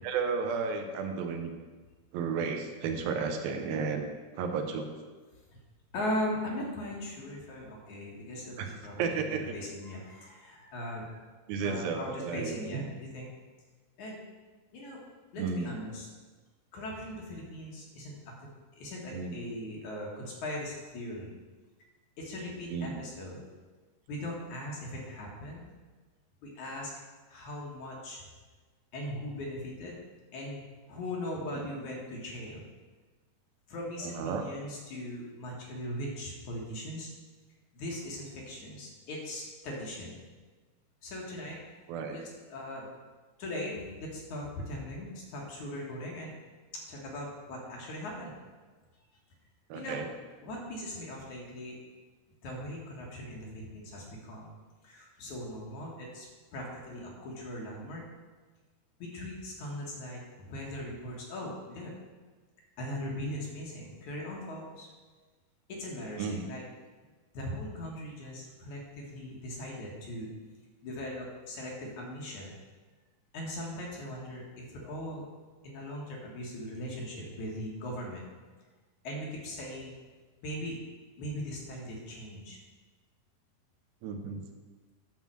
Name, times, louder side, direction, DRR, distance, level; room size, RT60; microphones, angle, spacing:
voice 1, 0.0-1.5 2.1-4.1 4.4-4.9 8.6-9.5 11.5-12.6 15.4-15.7 19.1-19.4 22.7-23.0 31.5-31.7 34.0-34.4 41.9-42.2 49.7-50.1 66.2-66.5 84.0-84.4, right 5 dB, 85° right, 5 dB, 2.7 m, -33 dB
voice 2, 5.9-11.3 11.6-13.3 14.0-14.2 14.7-15.0 15.3-16.1 16.7-21.3 22.2-23.4 24.1-25.7 26.4-26.9 27.3-28.2 28.9-30.0 30.3-30.6 30.9-32.6 33.7-37.1 37.7-40.2 41.0-41.6 42.1-42.2 42.5-42.9 43.4-46.3 46.7-48.4 49.7-50.0 50.4-51.8 52.4-54.5 54.8-58.0 59.0-61.9 62.8-64.9 65.7-66.6 67.3-70.3 70.8-72.5 73.3-75.2 75.6-78.2 79.0-79.9 80.4-80.8 81.2-82.6, left 1 dB, 60° left, -2 dB, 2.5 m, -39 dB
10.5 x 3.8 x 7.4 m, 1.4 s
omnidirectional pair, 4.2 m